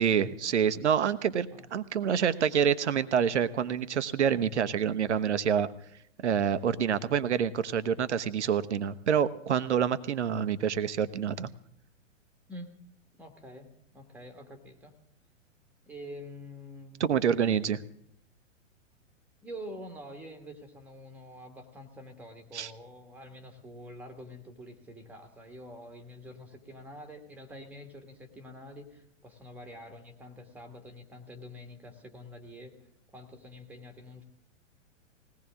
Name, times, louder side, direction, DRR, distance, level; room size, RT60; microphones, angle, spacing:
voice 1, 0.0-5.7 6.2-11.5 17.0-17.8 22.5-22.7, right 8 dB, 60° right, 13 dB, 0.9 m, -27 dB
voice 2, 13.2-14.9 15.9-17.1 19.4-32.7 33.1-34.2, equal, 5° right, 4 dB, 1.6 m, -46 dB
20.0 x 17.0 x 3.6 m, 0.71 s
figure-of-eight pair, 110°, 38 cm